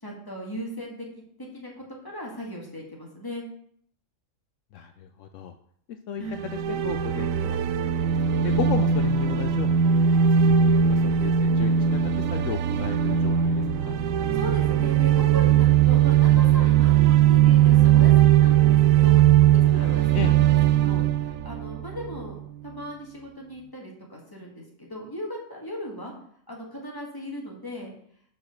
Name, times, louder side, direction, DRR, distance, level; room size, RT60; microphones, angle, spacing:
voice 1, 0.0-1.1 1.4-1.7 2.0-3.4 6.2-6.4 14.3-20.4 20.7-22.4 22.6-26.1 26.5-27.9, equal, 15° left, -2 dB, 2.0 m, -37 dB
voice 2, 4.7-5.5 6.1-6.2 6.7-7.6 8.4-9.9 10.6-12.0 12.3-14.0 20.1-20.4, left 8 dB, 75° left, 8 dB, 0.9 m, -34 dB
sound 1, 6.3-22.4, right 9 dB, 85° right, 1.0 m, -20 dB
7.2 x 4.8 x 6.6 m, 0.66 s
omnidirectional pair, 1.4 m